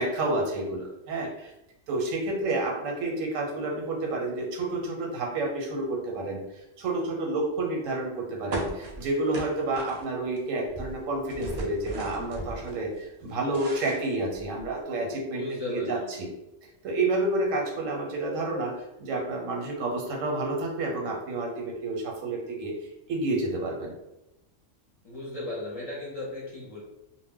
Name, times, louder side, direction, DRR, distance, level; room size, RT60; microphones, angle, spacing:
voice 1, 0.0-1.5 1.9-6.4 6.8-16.3 16.8-22.7 23.1-23.9, right 2 dB, 90° right, 0 dB, 1.1 m, -29 dB
sound 1, 8.5-10.4 10.7-12.8 13.2-14.8, right 2 dB, 70° right, 0.4 m, -37 dB
voice 2, 15.4-16.1 25.0-26.8, left 2 dB, 40° left, -6 dB, 0.5 m, -35 dB
2.2 x 2.1 x 3.6 m, 0.92 s
omnidirectional pair, 1.3 m